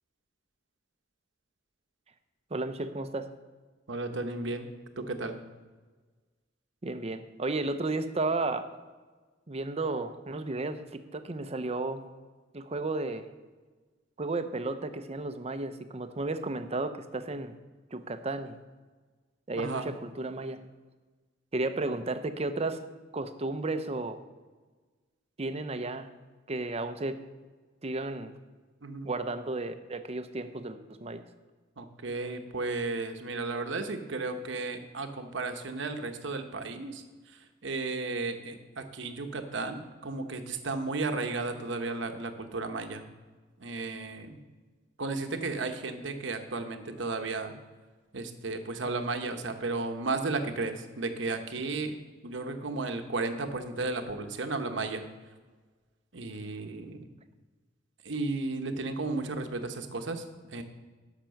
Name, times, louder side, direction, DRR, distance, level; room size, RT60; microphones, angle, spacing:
voice 1, 2.5-3.3 6.8-8.7 9.5-12.0 12.5-13.3 14.2-17.6 17.9-18.6 19.5-20.6 21.5-22.8 23.1-24.2 25.4-26.1 26.5-27.2 27.8-28.3 29.0-31.2, right 2 dB, 30° right, 9 dB, 0.6 m, -33 dB
voice 2, 3.9-4.7 5.0-5.4 19.6-19.9 28.8-29.1 31.8-37.0 37.6-43.0 43.6-44.4 45.0-47.5 48.1-52.0 52.2-55.0 56.1-57.0 58.0-60.6, right 3 dB, 65° right, 6 dB, 1.0 m, -34 dB
10.5 x 6.0 x 6.4 m, 1.4 s
head